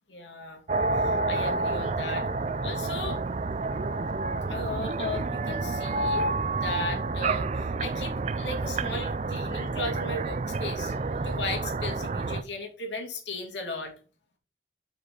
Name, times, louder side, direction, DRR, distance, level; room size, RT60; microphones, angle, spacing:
voice 1, 0.1-0.6 1.0-2.3 2.6-3.2 4.5-6.3 6.5-13.9, left 2 dB, 85° left, 3 dB, 2.4 m, -36 dB
sound 1, 0.7-12.4, right 3 dB, 40° right, 0.4 m, -29 dB
6.1 x 5.3 x 5.1 m, 0.38 s
head